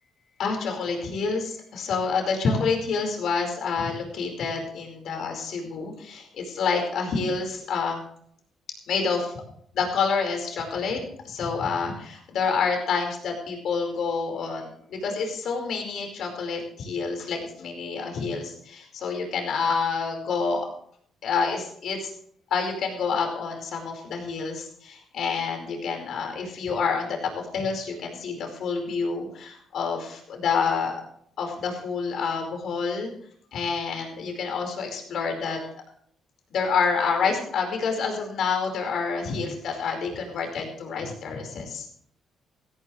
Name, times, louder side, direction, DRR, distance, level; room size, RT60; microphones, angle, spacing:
voice 1, 0.4-8.0 8.9-9.3 9.7-20.7 21.2-22.1 22.5-31.0 31.4-33.1 33.5-35.7 36.5-41.9, left 5 dB, 70° left, 3 dB, 4.8 m, -28 dB
16.0 x 15.5 x 3.3 m, 0.63 s
cardioid pair, 90°, 0 cm